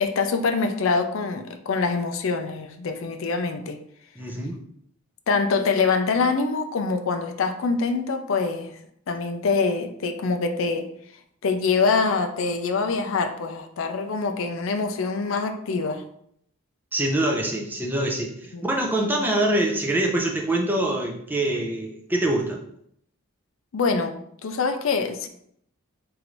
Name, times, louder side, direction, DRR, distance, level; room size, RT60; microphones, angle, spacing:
voice 1, 0.0-3.8 5.3-8.8 9.1-10.9 11.4-16.0 18.5-18.6 23.7-24.2 24.4-25.3, left 4 dB, 60° left, 6 dB, 0.4 m, -24 dB
voice 2, 4.2-4.6 16.9-22.6, right 1 dB, 10° right, 0 dB, 0.4 m, -24 dB
4.8 x 2.5 x 3.0 m, 0.69 s
head